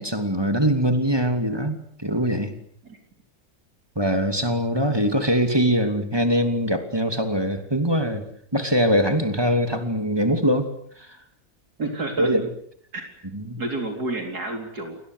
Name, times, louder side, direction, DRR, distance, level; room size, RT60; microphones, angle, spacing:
voice 1, 0.0-2.5 3.9-8.2 8.5-10.7 11.0-11.1 12.2-12.5 13.3-13.6, equal, 15° right, 7 dB, 3.0 m, -22 dB
voice 2, 11.8-12.3 12.9-13.1 13.6-15.0, right 2 dB, 85° right, 3 dB, 4.6 m, -30 dB
29.0 x 24.0 x 8.2 m, 0.65 s
omnidirectional pair, 1.6 m